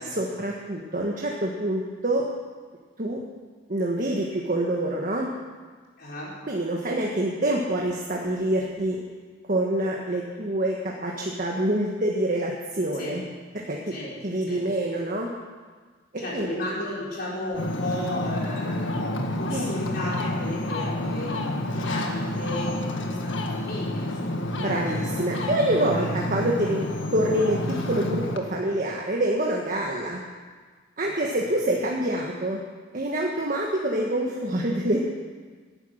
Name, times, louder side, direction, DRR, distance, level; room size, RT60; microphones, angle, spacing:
voice 1, 0.0-2.2 3.0-3.2 3.7-5.3 6.4-9.0 9.5-13.2 13.7-13.9 14.2-15.3 16.3-16.5 19.5-19.7 24.6-30.2 31.0-32.6 32.9-35.0, right 1 dB, 45° right, -1 dB, 1.5 m, -26 dB
voice 2, 6.0-6.3 12.9-13.2 13.9-14.1 14.5-14.6 16.2-24.6 25.7-26.1 31.0-31.8, left 1 dB, 55° left, -5 dB, 4.7 m, -35 dB
Ocean, 17.5-28.4, left 1 dB, 85° left, 1.6 m, -29 dB
17.5 x 10.5 x 6.6 m, 1.5 s
head